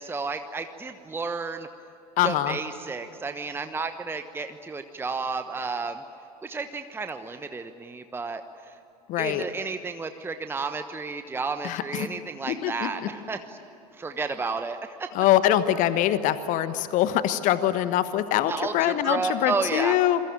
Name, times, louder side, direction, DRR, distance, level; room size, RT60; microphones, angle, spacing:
voice 1, 0.0-1.7 2.2-6.0 6.4-8.7 9.2-13.6 13.9-15.1 18.5-20.0, right 4 dB, 10° right, 8 dB, 1.1 m, -32 dB
voice 2, 2.2-2.6 9.1-9.4 11.6-12.1 12.5-12.9 15.1-20.2, left 12 dB, 40° left, 12 dB, 1.3 m, -23 dB
27.5 x 23.5 x 9.0 m, 2.9 s
figure-of-eight pair, 75°, 20 cm